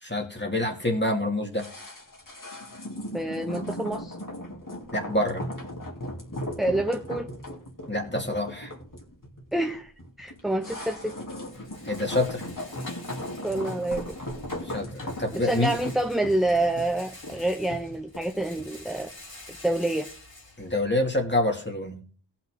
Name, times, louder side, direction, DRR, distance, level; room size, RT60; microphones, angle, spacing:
voice 1, 0.0-1.7 4.9-5.5 7.9-8.7 11.8-12.5 14.6-15.8 20.6-22.0, left 1 dB, 25° left, 2 dB, 2.2 m, -27 dB
sound 1, 1.5-18.8 19.1-19.2, left 1 dB, 45° left, 2.6 m, -37 dB
voice 2, 3.1-4.2 6.6-7.3 9.5-9.9 10.2-11.0 13.4-14.0 15.3-19.1 19.6-20.1, right 1 dB, ahead, 5 dB, 0.7 m, -27 dB
Rattle, 10.3-21.4, left 2 dB, 75° left, 3.4 m, -48 dB
17.5 x 6.0 x 3.6 m, 0.43 s
wide cardioid pair, 45°, 45 cm